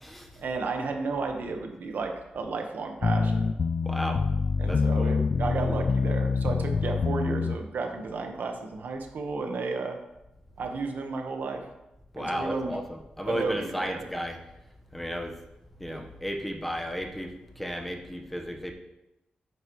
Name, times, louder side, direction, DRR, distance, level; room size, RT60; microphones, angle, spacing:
voice 1, 0.4-3.5 4.6-10.0 10.6-11.6 12.2-12.7 13.3-14.0, right 4 dB, 80° right, 4 dB, 1.4 m, -33 dB
sound 1, 3.0-7.6, left 4 dB, 50° left, 0.4 m, -26 dB
voice 2, 3.8-4.2 4.7-5.1 12.1-14.4 14.9-15.3 15.8-18.7, equal, 5° left, 3 dB, 1.2 m, -33 dB
11.0 x 9.2 x 3.2 m, 0.94 s
wide cardioid pair, 100°, 3 cm